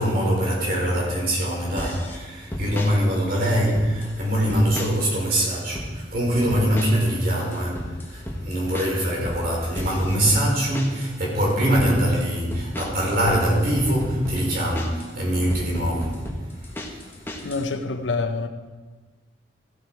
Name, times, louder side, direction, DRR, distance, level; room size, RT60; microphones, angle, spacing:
voice 1, 0.0-16.2 16.5-17.1, equal, 50° right, 3.9 m, -23 dB
sound 1, 1.8-2.2 2.5-2.9 3.5-4.1 4.5-5.1 5.4-5.9 6.5-7.1 7.4-11.1 11.5-11.9 12.5-15.1 15.5-17.7, left 1 dB, 10° left, 1.3 m, -33 dB
voice 2, 17.4-18.5, left 3 dB, 80° left, 0.9 m, -26 dB
14.5 x 8.0 x 4.5 m
head